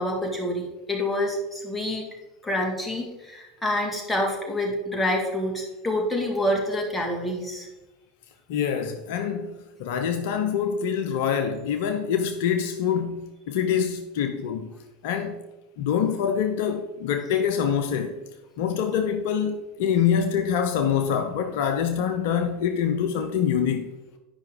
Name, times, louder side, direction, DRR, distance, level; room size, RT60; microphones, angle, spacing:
voice 1, 0.0-2.0 2.4-7.7, left 1 dB, 10° left, 2.2 m, -27 dB
voice 2, 8.5-14.7 15.0-15.4 15.8-18.1 18.6-23.9, left 8 dB, 65° left, 0.6 m, -25 dB
9.8 x 5.4 x 3.8 m
hypercardioid pair, 80°, 0 cm